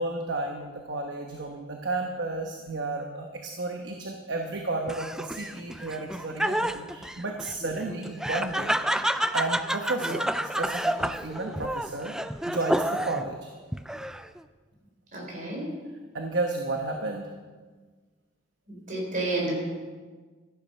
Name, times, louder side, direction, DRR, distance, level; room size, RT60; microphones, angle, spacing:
voice 1, 0.0-9.0 9.3-12.2 12.5-13.5 16.1-17.3, right 2 dB, 65° right, 3 dB, 1.1 m, -32 dB
Laughter, 4.9-13.3 13.7-14.4, right 1 dB, 5° right, 0.3 m, -29 dB
voice 2, 15.1-15.7 18.7-19.5, right 2 dB, 45° right, -1 dB, 4.1 m, -31 dB
13.5 x 10.5 x 5.7 m, 1.4 s
head